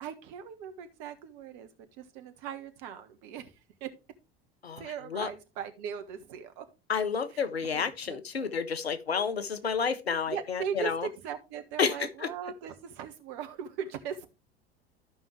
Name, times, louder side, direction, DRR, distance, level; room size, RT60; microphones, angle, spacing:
voice 1, 0.0-3.5 3.8-3.9 4.8-6.7 7.7-8.5 10.3-14.3, right 8 dB, 55° right, 1.4 m, -39 dB
voice 2, 4.6-5.3 6.9-11.1 11.8-12.3, left 6 dB, 85° left, 0.8 m, -30 dB
13.5 x 5.5 x 3.2 m
figure-of-eight pair, 70°, 30 cm